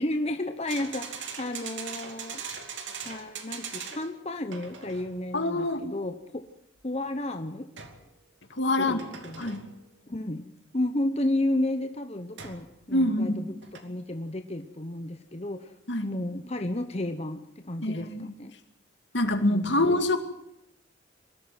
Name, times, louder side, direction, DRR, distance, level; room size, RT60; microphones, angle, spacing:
voice 1, 0.0-2.6 3.0-6.4 6.8-7.7 8.8-9.5 10.1-10.5 10.7-15.7 16.0-18.5 19.5-19.9, left 1 dB, 35° left, 7 dB, 1.0 m, -32 dB
sound 1, 0.7-4.2 4.5-5.1 7.8-8.1 8.9-9.7 12.4-12.7 13.6-13.8, right 6 dB, 80° right, 2.7 m, -40 dB
voice 2, 5.3-5.8 8.6-9.0 9.4-9.7 12.9-13.5 15.9-16.1 17.8-18.3 19.1-20.2, left 1 dB, 75° left, 7 dB, 2.4 m, -25 dB
22.5 x 13.5 x 9.4 m, 0.79 s
head